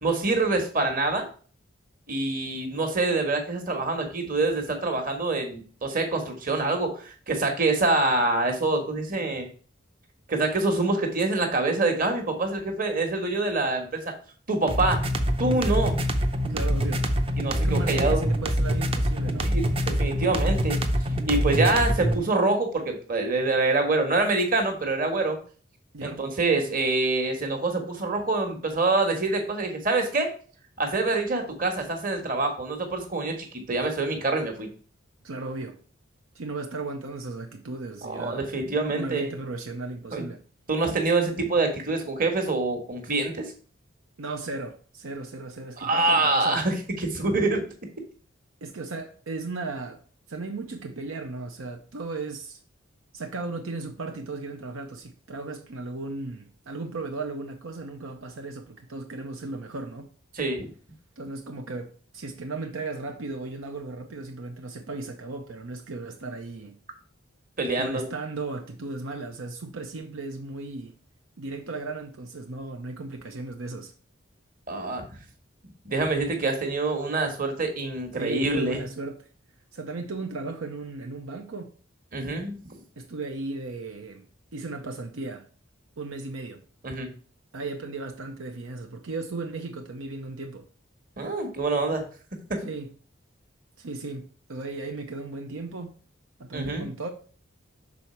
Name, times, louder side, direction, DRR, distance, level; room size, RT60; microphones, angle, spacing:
voice 1, 0.0-1.3 2.1-9.5 10.3-14.1 14.5-15.0 15.4-16.0 17.4-18.3 19.5-20.8 21.3-25.4 26.0-30.3 30.8-34.7 38.0-39.3 40.1-40.2 40.7-43.5 45.8-47.6 60.3-60.7 67.6-68.0 74.7-75.1 75.8-78.8 82.1-82.6 86.8-87.1 91.2-92.1 92.5-92.6 96.5-96.9, right 2 dB, 40° right, 1.4 m, -25 dB
sound 1, 14.7-22.2, equal, 25° right, 0.6 m, -25 dB
voice 2, 16.5-17.1 17.6-19.6 25.9-26.3 35.2-35.8 36.3-38.5 38.9-40.4 44.2-46.6 48.6-50.0 50.3-52.6 53.1-60.1 61.2-66.7 67.8-71.0 71.4-73.9 78.1-79.3 79.7-81.7 83.0-84.2 84.5-85.5 86.0-86.6 87.5-90.6 92.6-92.9 93.8-95.9 96.4-97.1, right 3 dB, 80° right, 0.8 m, -36 dB
6.3 x 4.1 x 4.4 m
head